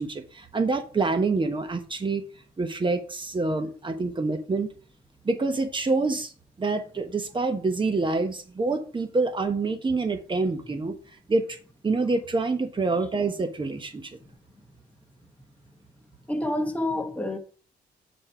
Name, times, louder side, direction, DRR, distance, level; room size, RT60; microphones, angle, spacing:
voice 1, 0.0-2.2 2.6-4.7 5.2-6.3 6.6-10.9 11.3-11.5 11.8-14.2, right 3 dB, 25° right, 1.2 m, -26 dB
voice 2, 16.3-17.4, left 1 dB, 10° left, 1.1 m, -28 dB
7.3 x 4.3 x 4.6 m
cardioid pair, 95°, 18 cm